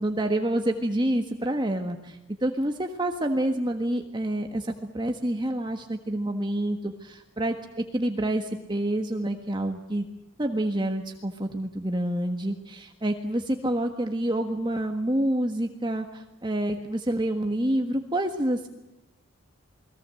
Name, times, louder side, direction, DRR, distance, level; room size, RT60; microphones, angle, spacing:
voice 1, 0.0-10.1 10.4-18.7, right 1 dB, 20° right, 5 dB, 1.5 m, -28 dB
29.5 x 21.5 x 7.8 m, 0.91 s
head